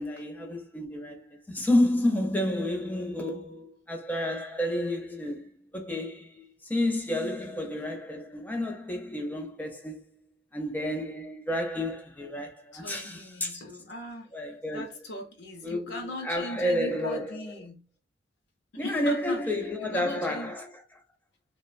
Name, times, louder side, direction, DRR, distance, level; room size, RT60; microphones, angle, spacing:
voice 1, 0.0-10.0 10.5-13.6 14.3-14.9 15.6-16.0 16.2-17.4 18.8-20.7, left 1 dB, 10° left, 0.5 m, -30 dB
voice 2, 12.7-14.3 14.7-17.9 18.8-20.5, left 1 dB, 65° left, 0.6 m, -39 dB
2.8 x 2.0 x 2.4 m
head